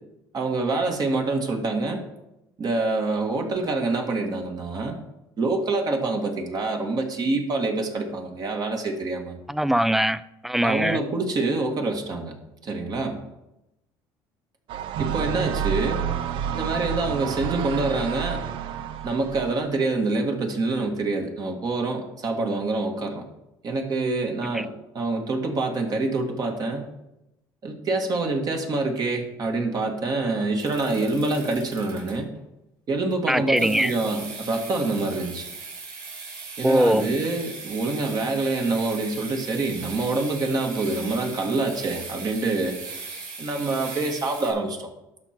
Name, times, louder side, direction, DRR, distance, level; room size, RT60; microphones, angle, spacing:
voice 1, 0.3-2.0 2.6-4.9 5.4-9.4 10.6-12.3 12.6-13.2 15.0-16.0 16.5-18.4 19.0-23.2 23.6-26.8 27.6-32.3 32.9-35.5 36.6-42.8 43.4-44.9, right 3 dB, 45° right, 3 dB, 1.8 m, -26 dB
voice 2, 9.5-11.0 24.5-24.6 33.3-33.9 36.6-37.1, equal, 5° right, 16 dB, 0.4 m, -22 dB
sound 1, 14.7-19.6, right 9 dB, 65° right, 0.6 m, -29 dB
sound 2, 30.6-32.4 33.6-44.5, right 4 dB, 85° right, 3.0 m, -39 dB
11.5 x 5.9 x 4.5 m, 0.90 s
supercardioid pair, 95°, 9 cm